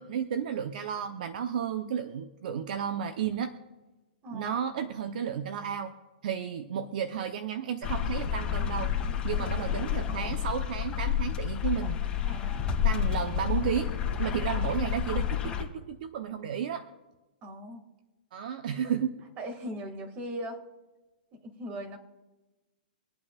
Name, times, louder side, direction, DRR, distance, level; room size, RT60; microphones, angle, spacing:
voice 1, 0.0-3.5 4.3-5.9 6.2-8.9 9.2-12.0 12.8-13.9 14.2-16.9 18.3-19.2, right 8 dB, 60° right, 8 dB, 0.8 m, -32 dB
voice 2, 4.2-4.6 12.2-12.7 17.4-17.9 19.4-20.6 21.3-22.0, equal, 30° right, 5 dB, 2.1 m, -39 dB
sound 1, 7.8-15.6, left 9 dB, 20° left, 2.1 m, -30 dB
25.0 x 8.6 x 2.4 m, 1.1 s
hypercardioid pair, 145°, 5 cm